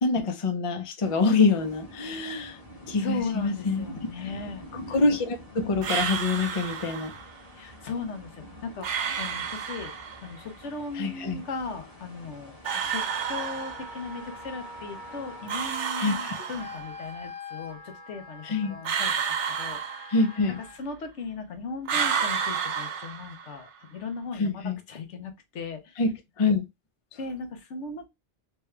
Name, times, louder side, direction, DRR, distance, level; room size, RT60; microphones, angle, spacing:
voice 1, 0.0-2.6 2.9-3.9 4.9-7.1 10.9-11.4 16.0-16.5 18.4-18.8 20.1-20.6 24.4-24.8 26.0-26.6, left 3 dB, 40° left, 0.5 m, -25 dB
sound 1, 1.0-15.7, equal, 55° left, 1.3 m, -47 dB
voice 2, 3.0-4.6 7.6-8.9 9.2-9.9 10.2-12.6 12.8-19.3 19.6-20.1 20.8-26.0 27.2-28.1, left 4 dB, 85° left, 1.1 m, -37 dB
sound 2, 5.8-7.3 8.8-10.3 12.6-14.2 15.5-17.0 18.8-20.6 21.9-23.7, right 7 dB, 85° right, 1.0 m, -30 dB
Wind instrument woodwind instrument, 13.1-20.8, left 1 dB, 20° right, 1.2 m, -44 dB
3.3 x 2.3 x 3.2 m
omnidirectional pair, 1.2 m